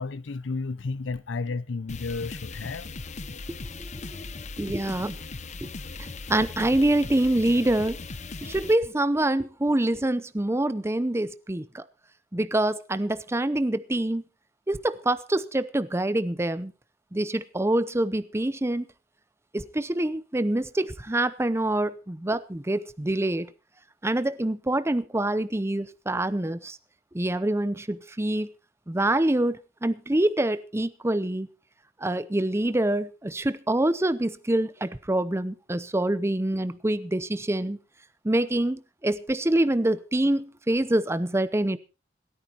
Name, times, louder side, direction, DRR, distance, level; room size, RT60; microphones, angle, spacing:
voice 1, 0.0-2.9, left 4 dB, 85° left, 0.6 m, -32 dB
sound 1, 1.9-8.8, left 3 dB, 40° left, 0.8 m, -38 dB
voice 2, 3.8-4.1 4.6-5.2 5.6-5.7 6.0-8.0 8.4-11.8 12.3-14.2 14.7-16.7 17.1-18.9 19.5-23.5 24.0-26.8 27.1-28.5 28.9-31.5 32.0-37.8 38.2-41.8, right 1 dB, 15° right, 0.6 m, -26 dB
27.0 x 9.3 x 2.9 m
head